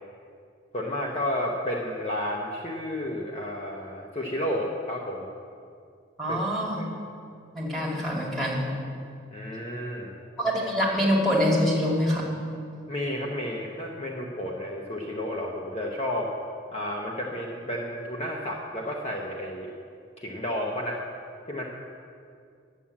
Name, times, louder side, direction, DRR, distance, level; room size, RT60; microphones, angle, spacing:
voice 1, 0.7-5.3 6.2-6.4 6.7-6.9 9.3-10.1 12.9-16.3 16.7-19.7 20.2-21.0 21.5-21.7, left 1 dB, 30° left, -2 dB, 0.9 m, -31 dB
voice 2, 6.2-6.8 7.5-8.7 10.4-12.3, equal, ahead, -6 dB, 2.2 m, -25 dB
10.0 x 7.4 x 8.5 m, 2.3 s
head